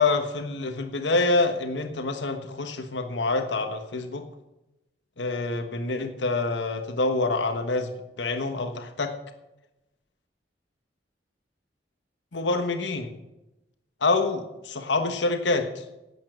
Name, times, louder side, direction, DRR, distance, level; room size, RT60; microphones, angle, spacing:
voice 1, 0.0-4.2 5.2-7.9 8.2-9.1 12.3-13.1 14.0-15.8, left 3 dB, 90° left, 7 dB, 1.3 m, -26 dB
11.0 x 8.6 x 7.8 m, 0.96 s
head